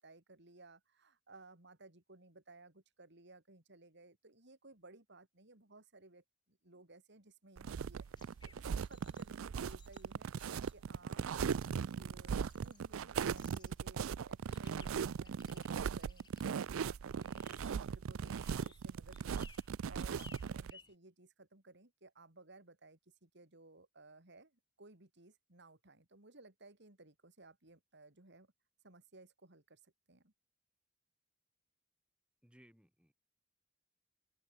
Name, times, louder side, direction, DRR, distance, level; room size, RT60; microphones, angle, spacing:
voice 1, 0.0-10.3 10.7-28.5 28.8-30.3, right 2 dB, 60° right, 3.5 m, -60 dB
sound 1, 7.6-20.7, right 7 dB, 85° right, 0.4 m, -39 dB
sound 2, 8.0-20.9, left 5 dB, 20° left, 2.9 m, -64 dB
voice 2, 32.4-33.1, equal, 5° right, 2.8 m, -63 dB
open air
head